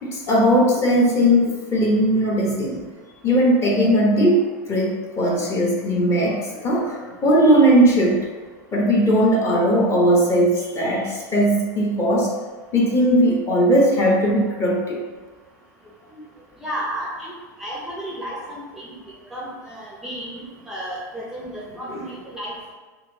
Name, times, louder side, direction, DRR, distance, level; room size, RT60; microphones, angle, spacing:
voice 1, 0.0-2.8 3.2-8.2 8.7-12.3 12.7-15.0 21.9-22.0, equal, 30° left, -3 dB, 1.0 m, -18 dB
voice 2, 16.6-17.3 17.6-19.0 19.3-22.7, right 1 dB, 5° right, -5 dB, 0.6 m, -33 dB
4.2 x 2.0 x 3.9 m, 1.4 s
supercardioid pair, 115°, 10 cm